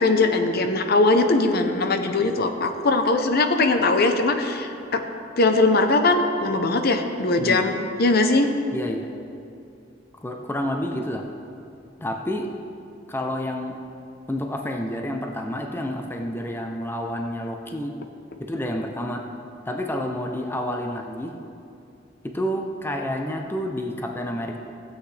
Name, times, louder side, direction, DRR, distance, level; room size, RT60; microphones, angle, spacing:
voice 1, 0.0-5.0 5.4-8.5, left 2 dB, 55° left, 6 dB, 0.7 m, -20 dB
voice 2, 8.7-9.1 10.2-11.2 12.0-12.5 13.1-13.8 14.3-17.9 18.4-19.2 19.7-21.3 22.2-24.6, equal, 10° left, 3 dB, 0.5 m, -29 dB
16.0 x 8.2 x 3.3 m, 2.6 s
head